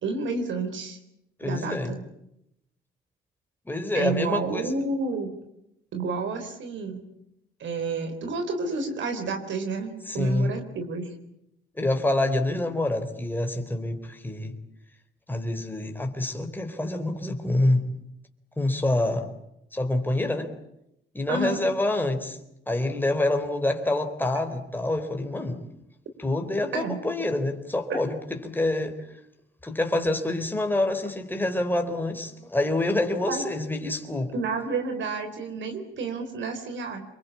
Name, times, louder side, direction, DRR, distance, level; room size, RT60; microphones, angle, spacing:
voice 1, 0.0-1.0 1.4-2.0 3.9-5.3 5.9-7.0 7.6-11.1 21.3-21.6 26.7-27.0 27.9-28.0 33.3-33.4 34.3-37.0, right 3 dB, 70° right, 7 dB, 4.0 m, -30 dB
voice 2, 1.4-1.9 3.7-4.7 10.1-10.5 11.8-14.6 15.3-17.9 18.6-19.3 19.7-20.5 21.1-22.4 22.7-25.6 26.2-29.0 29.6-34.3, left 2 dB, 10° left, 5 dB, 3.8 m, -26 dB
26.5 x 22.5 x 8.5 m, 0.82 s
cardioid pair, 90°, 20 cm